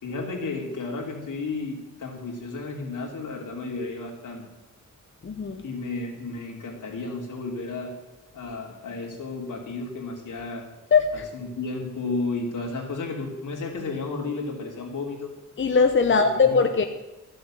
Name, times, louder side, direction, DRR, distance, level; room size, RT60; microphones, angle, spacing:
voice 1, 0.0-4.4 5.6-7.9 8.3-10.6 11.1-15.3 16.1-16.6, left 3 dB, 80° left, 1 dB, 3.2 m, -33 dB
voice 2, 5.2-5.6 10.9-11.2 15.6-16.8, left 5 dB, 40° left, 6 dB, 0.9 m, -20 dB
14.0 x 7.6 x 7.5 m, 1.1 s
wide cardioid pair, 115°, 30 cm